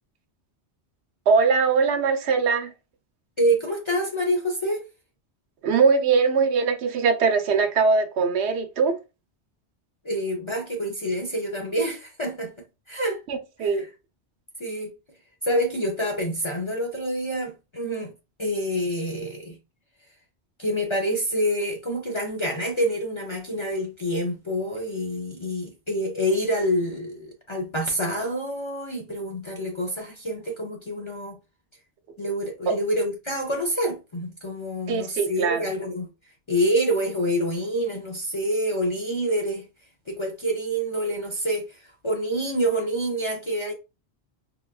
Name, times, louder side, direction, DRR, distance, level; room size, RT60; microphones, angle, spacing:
voice 1, 1.3-2.7 5.6-9.0 13.3-13.9 32.7-32.8 34.9-35.7, right 5 dB, 85° right, 0.9 m, -21 dB
voice 2, 3.4-4.8 10.0-12.5 12.9-13.2 13.6-13.8 14.6-14.9 15.4-18.1 18.4-19.6 20.6-31.4 32.2-36.1 36.5-39.7 40.1-43.7, equal, 40° left, 0.4 m, -27 dB
3.5 x 2.3 x 2.3 m
omnidirectional pair, 1.1 m